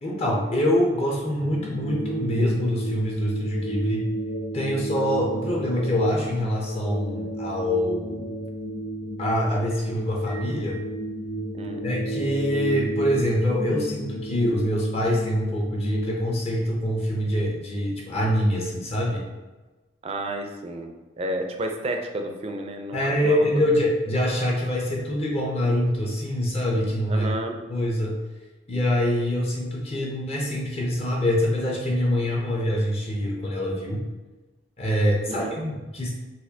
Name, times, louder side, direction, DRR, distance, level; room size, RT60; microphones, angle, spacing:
voice 1, 0.0-4.0 4.5-8.3 9.2-10.8 11.8-19.3 22.9-27.3 27.7-28.1 28.7-34.0 34.8-36.1, equal, 35° left, -2 dB, 0.6 m, -25 dB
sound 1, 1.3-16.1, right 1 dB, 80° left, 1.0 m, -32 dB
voice 2, 20.0-20.9 21.2-23.6 27.1-27.6 35.3-35.6, right 1 dB, 35° right, 4 dB, 0.4 m, -31 dB
4.1 x 2.4 x 2.7 m, 1.2 s
head